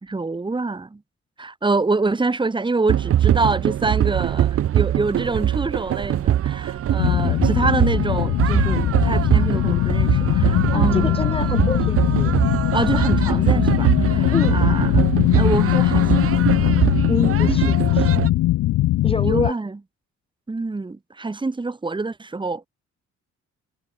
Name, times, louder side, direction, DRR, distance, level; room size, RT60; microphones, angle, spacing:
voice 1, 0.0-1.0 1.4-11.2 12.7-14.9 15.4-16.3 19.2-19.8 20.5-22.7, right 3 dB, 15° right, 1.5 m, -26 dB
sound 1, 2.9-18.3, right 11 dB, 50° right, 0.6 m, -22 dB
sound 2, 7.0-19.5, left 16 dB, 80° left, 0.8 m, -20 dB
voice 2, 10.7-12.3 14.3-14.6 17.1-18.2 19.0-19.5, left 2 dB, 20° left, 4.3 m, -26 dB
cardioid pair, 90°, 30 cm